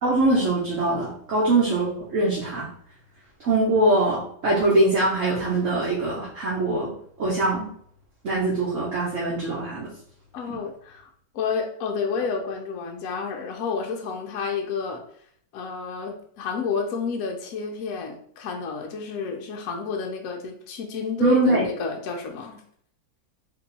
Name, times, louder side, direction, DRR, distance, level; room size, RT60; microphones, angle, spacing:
voice 1, 0.0-2.7 3.4-6.9 7.2-7.7 8.2-9.9 10.5-10.6 21.2-21.7, right 2 dB, 50° right, -5 dB, 1.1 m, -22 dB
voice 2, 10.3-11.1 11.3-15.0 15.5-22.6, left 5 dB, 70° left, 2 dB, 0.8 m, -30 dB
3.6 x 3.0 x 4.0 m, 0.63 s
omnidirectional pair, 2.2 m